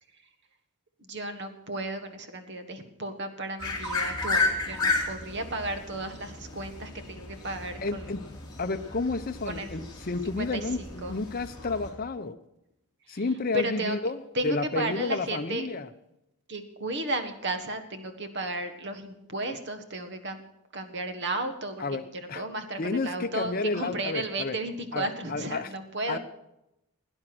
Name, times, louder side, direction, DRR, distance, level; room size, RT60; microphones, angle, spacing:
voice 1, 1.1-8.0 9.5-9.7 10.4-10.6 11.0-11.2 13.1-13.2 13.5-14.0 14.3-15.7 16.5-20.4 20.7-21.8 22.1-26.2, right 2 dB, 50° right, 8 dB, 1.6 m, -34 dB
sound 1, 3.6-11.9, left 3 dB, 20° left, 3.0 m, -33 dB
voice 2, 7.8-8.2 8.6-12.4 13.1-15.9 21.8-22.4 22.8-24.5 24.9-25.7 26.1-26.2, left 3 dB, 40° left, 7 dB, 0.7 m, -31 dB
17.5 x 9.9 x 6.1 m, 0.86 s
head